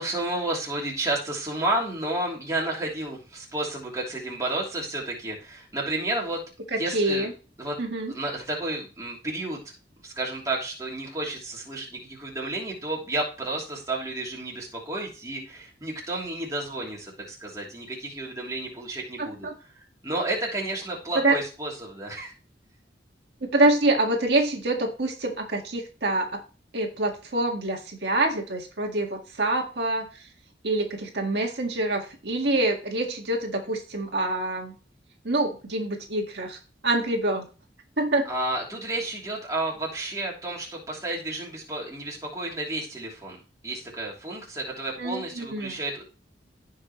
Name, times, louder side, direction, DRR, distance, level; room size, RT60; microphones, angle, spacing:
voice 1, 0.0-6.4 6.8-7.3 7.6-7.8 8.1-9.6 10.0-19.5 20.0-22.3 38.2-46.0, right 2 dB, 20° right, -3 dB, 3.2 m, -31 dB
voice 2, 6.7-7.3 7.8-8.1 19.2-19.5 21.2-21.4 23.5-26.3 26.7-30.3 30.6-34.7 35.2-37.5 38.0-38.3 45.0-45.8, right 2 dB, 65° right, 1 dB, 1.8 m, -26 dB
16.0 x 5.7 x 3.1 m, 0.34 s
head